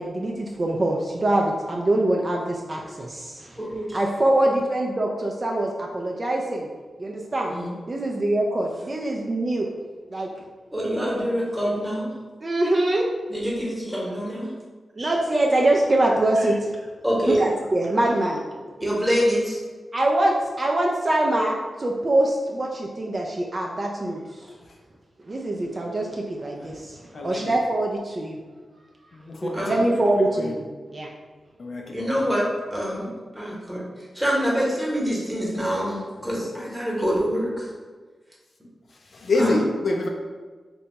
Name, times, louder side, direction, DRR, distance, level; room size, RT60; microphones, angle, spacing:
voice 1, 0.0-3.6 3.9-6.7 7.0-7.6 7.9-9.7 10.1-10.3 12.4-13.1 15.0-16.9 17.3-18.4 19.9-24.5 25.2-28.4 29.4-30.6 30.9-31.1 36.8-36.9, right 1 dB, 35° right, 0 dB, 0.3 m, -24 dB
voice 2, 3.6-4.0 7.5-7.7 10.7-12.1 13.3-14.5 17.0-17.4 18.8-19.6 29.5-29.8 31.9-33.1 33.3-33.8 34.1-37.7 39.4-39.5, equal, 10° right, -5 dB, 1.0 m, -25 dB
voice 3, 27.1-27.6 29.1-29.6 30.4-30.5 31.6-32.1 39.1-40.1, left 2 dB, 55° left, 1 dB, 0.4 m, -26 dB
2.7 x 2.2 x 4.0 m, 1.4 s
wide cardioid pair, 95°, 0 cm